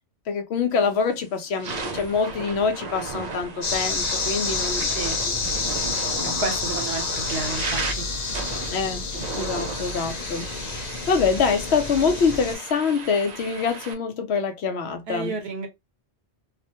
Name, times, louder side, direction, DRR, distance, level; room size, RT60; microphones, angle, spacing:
voice 1, 0.3-5.0 6.1-6.4 8.7-9.0 9.4-15.3, left 5 dB, 75° left, 0.9 m, -25 dB
sound 1, 0.8-1.0 1.5-13.9, right 4 dB, 55° right, 0.5 m, -35 dB
sound 2, 3.6-12.6, left 4 dB, 50° left, 0.6 m, -29 dB
voice 2, 6.4-8.1 15.1-15.7, right 3 dB, 70° right, 1.1 m, -31 dB
2.4 x 2.1 x 2.8 m
omnidirectional pair, 1.1 m